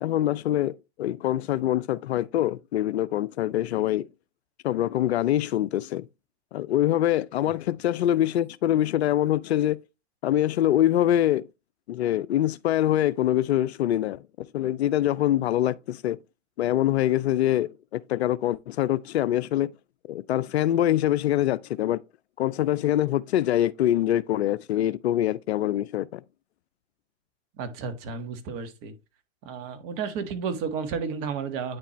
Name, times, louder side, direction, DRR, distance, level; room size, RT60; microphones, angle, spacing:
voice 1, 0.0-0.7 1.0-4.1 4.6-6.1 6.5-9.8 10.2-11.5 11.9-14.2 14.5-16.2 16.6-19.7 20.1-22.0 22.4-26.2, left 12 dB, 60° left, 0.5 m, -24 dB
voice 2, 27.6-28.9 29.4-31.8, right 6 dB, 35° right, 1.5 m, -32 dB
9.3 x 4.4 x 3.0 m
hypercardioid pair, 125°, 36 cm